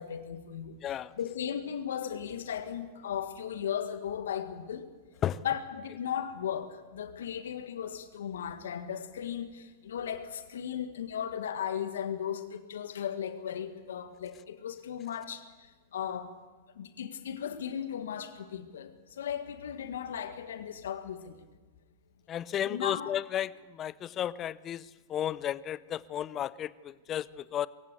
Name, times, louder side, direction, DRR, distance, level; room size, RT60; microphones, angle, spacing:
voice 1, 0.0-0.8 1.2-4.9 5.4-16.3 16.8-21.4 22.7-23.1, left 9 dB, 70° left, 9 dB, 1.8 m, -36 dB
voice 2, 0.8-1.1 5.2-5.4 22.3-27.7, left 11 dB, 30° left, 19 dB, 0.7 m, -33 dB
22.5 x 16.0 x 8.3 m, 1.3 s
hypercardioid pair, 105°, 0 cm